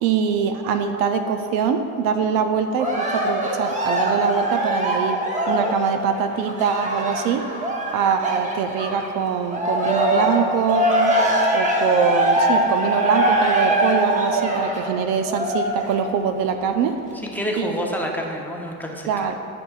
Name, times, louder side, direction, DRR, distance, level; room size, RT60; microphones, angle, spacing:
voice 1, 0.0-5.2 5.5-7.4 7.9-11.1 11.5-17.0 17.6-17.9 19.1-19.3, right 6 dB, 65° right, 7 dB, 0.6 m, -23 dB
Cheering, 2.8-9.1 9.5-16.1 16.7-16.8, right 1 dB, 20° right, 0.9 m, -22 dB
voice 2, 17.1-19.3, equal, 5° left, -1 dB, 0.8 m, -28 dB
11.5 x 5.2 x 2.4 m, 2.6 s
supercardioid pair, 90°, 36 cm